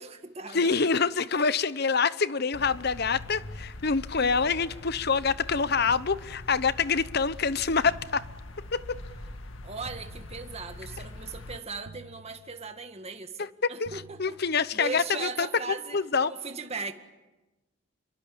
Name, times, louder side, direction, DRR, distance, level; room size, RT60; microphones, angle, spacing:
voice 1, 0.0-0.7 9.6-14.4 14.7-16.9, right 4 dB, 30° right, 1.9 m, -38 dB
voice 2, 0.5-8.3 8.7-9.0 13.4-13.5 13.8-15.5 15.9-16.3, left 5 dB, 55° left, 0.9 m, -26 dB
sound 1, 2.5-11.6, left 1 dB, 80° left, 1.9 m, -43 dB
sound 2, 5.9-7.0 7.9-9.0 9.9-11.0 11.9-13.0 13.9-15.0, right 3 dB, 75° right, 1.3 m, -52 dB
29.0 x 23.5 x 8.7 m
head